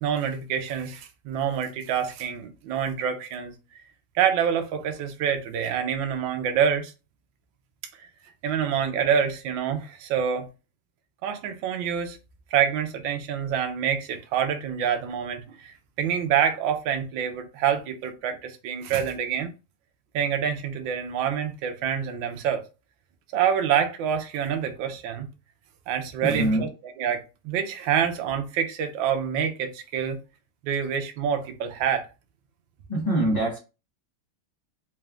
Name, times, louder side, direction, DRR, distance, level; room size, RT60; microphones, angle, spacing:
voice 1, 0.0-3.5 4.1-6.9 8.4-10.5 11.2-12.2 12.5-19.5 20.1-22.6 23.3-25.3 25.9-26.7 27.0-30.2 30.6-32.1, right 8 dB, 70° right, 1.3 m, -26 dB
voice 2, 26.2-26.7 32.9-33.6, right 1 dB, 85° left, 0.3 m, -24 dB
4.2 x 2.4 x 3.3 m
omnidirectional pair, 2.3 m